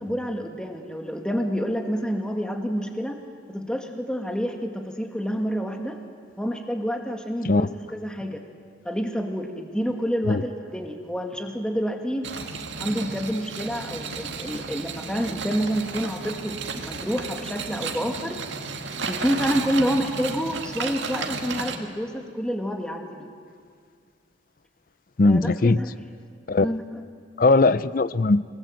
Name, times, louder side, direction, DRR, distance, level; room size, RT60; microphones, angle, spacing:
voice 1, 0.0-3.2 3.5-6.0 6.4-8.4 8.9-12.3 12.8-18.4 19.0-23.3 25.2-25.9 26.6-27.0, equal, 5° left, 3 dB, 1.8 m, -28 dB
sound 1, 12.2-21.8, right 4 dB, 80° right, 2.0 m, -33 dB
voice 2, 25.2-25.8 26.5-26.7 27.4-28.4, left 3 dB, 50° left, 17 dB, 0.5 m, -19 dB
28.5 x 19.5 x 7.8 m, 2.1 s
head